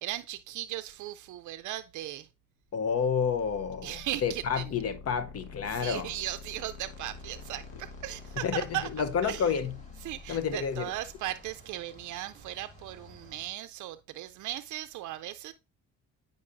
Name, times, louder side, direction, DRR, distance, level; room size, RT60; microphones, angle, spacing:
voice 1, 0.0-2.3 3.8-4.6 5.7-8.9 9.2-9.6 10.0-15.5, right 14 dB, 75° right, 0.4 m, -37 dB
voice 2, 2.7-6.1 8.4-8.6 8.9-9.7 10.3-10.9, left 6 dB, 55° left, 0.7 m, -29 dB
sound 1, 2.8-11.7, left 4 dB, 75° left, 1.3 m, -48 dB
sound 2, 6.8-13.5, left 1 dB, 25° left, 3.5 m, -54 dB
9.6 x 5.3 x 2.5 m
cardioid pair, 90°, 30 cm